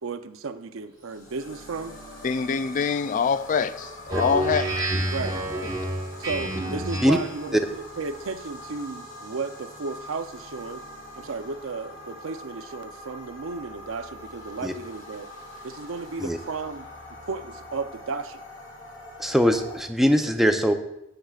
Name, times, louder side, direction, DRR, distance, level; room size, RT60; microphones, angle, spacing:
voice 1, 0.0-2.0 5.1-5.4 6.2-10.8 11.2-15.3 15.6-16.9 17.3-18.4, right 4 dB, 75° right, 0.6 m, -34 dB
sound 1, 0.9-19.8, left 1 dB, 70° left, 3.3 m, -43 dB
voice 2, 2.2-4.7, left 6 dB, 40° left, 0.3 m, -25 dB
Speech synthesizer, 4.1-7.4, right 1 dB, 20° right, 1.1 m, -29 dB
voice 3, 19.2-20.7, equal, ahead, 0.7 m, -21 dB
17.0 x 7.6 x 2.4 m
head